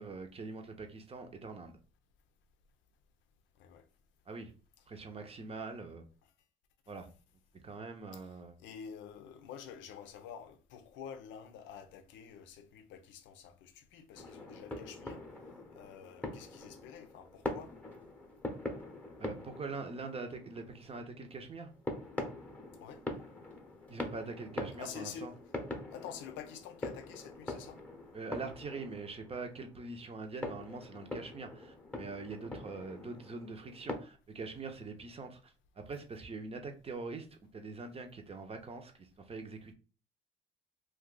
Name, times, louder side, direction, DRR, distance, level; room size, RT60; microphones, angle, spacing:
voice 1, 0.0-1.8 4.3-4.5 4.9-6.0 6.9-7.1 7.5-8.5 19.2-21.7 23.9-25.3 28.1-38.9 39.3-39.7, right 3 dB, 30° right, 0.7 m, -43 dB
voice 2, 3.6-3.9 8.1-15.2 15.7-17.7 22.8-23.0 24.8-25.4 25.9-27.8, left 8 dB, 70° left, 0.6 m, -48 dB
sound 1, 14.2-34.0, left 2 dB, 5° left, 0.9 m, -44 dB
2.6 x 2.3 x 3.8 m
supercardioid pair, 70°, 20 cm